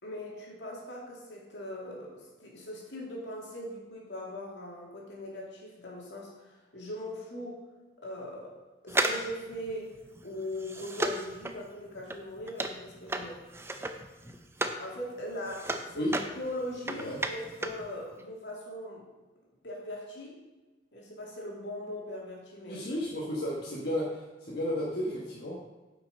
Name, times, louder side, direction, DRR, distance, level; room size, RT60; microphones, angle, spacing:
voice 1, 0.0-7.6 8.0-8.5 8.8-9.9 10.2-13.4 14.8-16.1 16.3-19.0 19.6-20.4 20.9-22.8, left 1 dB, 80° left, -2 dB, 2.5 m, -40 dB
sound 1, 8.9-14.9 15.2-17.9 18.1-18.2, right 2 dB, 15° right, 0.5 m, -34 dB
voice 2, 16.9-17.2 22.7-25.6, equal, 65° left, -5 dB, 1.4 m, -33 dB
8.5 x 5.9 x 5.3 m, 1.2 s
head